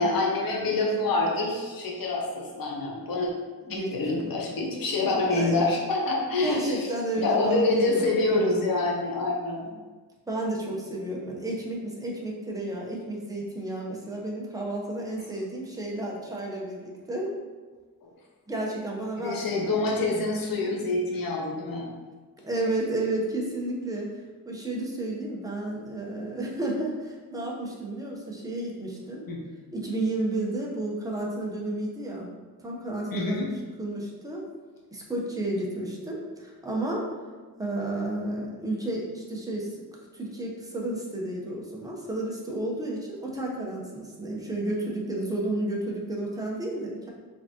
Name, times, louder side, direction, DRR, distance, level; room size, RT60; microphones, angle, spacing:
voice 1, 0.0-3.3 3.7-6.9 7.2-9.7 18.0-18.1 19.2-21.9 29.3-29.4 33.1-33.5, left 2 dB, 65° left, -1 dB, 0.8 m, -26 dB
voice 2, 3.6-4.3 5.3-5.6 6.4-8.1 10.3-17.3 18.5-19.7 22.4-24.2 24.4-29.3 29.7-32.3 32.6-33.4 33.8-34.4 34.9-37.0 37.6-39.8 40.1-47.1, right 1 dB, 10° right, -3 dB, 0.9 m, -32 dB
4.8 x 3.6 x 2.9 m, 1.4 s
wide cardioid pair, 120°, 37 cm